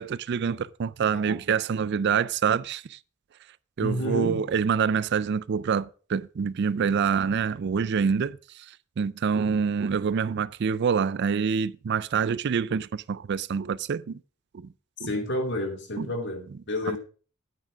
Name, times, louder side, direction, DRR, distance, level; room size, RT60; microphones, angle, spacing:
voice 1, 0.0-3.0 3.8-8.7 9.0-14.2 14.5-14.7 15.0-15.1 16.0-16.1 16.9-17.0, right 6 dB, 55° right, 0.4 m, -26 dB
voice 2, 3.8-4.4 15.0-17.0, left 1 dB, 55° left, 2.5 m, -30 dB
9.4 x 9.0 x 5.0 m
head